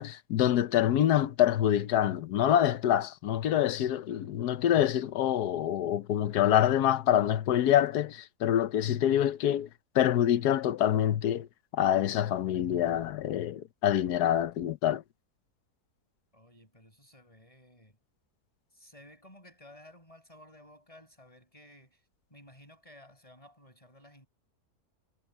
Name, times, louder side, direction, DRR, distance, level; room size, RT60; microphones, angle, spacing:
voice 1, 0.0-9.7 9.9-11.5 11.7-15.0, left 11 dB, 80° left, 1.4 m, -26 dB
voice 2, 16.3-18.0 18.7-22.0 22.3-24.3, left 1 dB, 20° left, 7.2 m, -55 dB
omnidirectional pair, 1.7 m